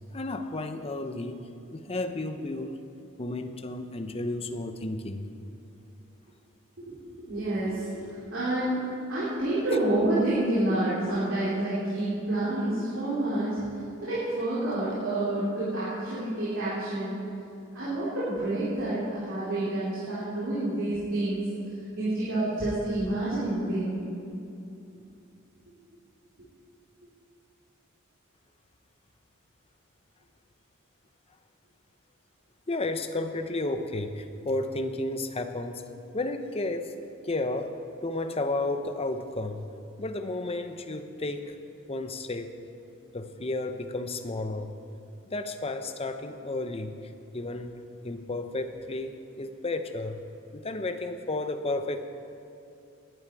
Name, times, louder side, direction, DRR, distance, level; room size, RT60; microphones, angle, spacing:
voice 1, 0.1-1.4 1.7-2.8 3.2-5.3 32.7-35.9 36.1-36.9 37.2-37.7 38.0-39.6 40.0-41.6 41.9-42.6 43.1-44.7 45.3-47.8 48.0-50.2 50.5-52.1, left 2 dB, 30° left, 7 dB, 0.8 m, -32 dB
voice 2, 6.8-8.8 9.1-13.6 14.0-17.2 17.7-21.4 22.0-24.0, right 1 dB, 65° right, -11 dB, 3.9 m, -28 dB
19.0 x 11.0 x 4.7 m, 2.7 s
head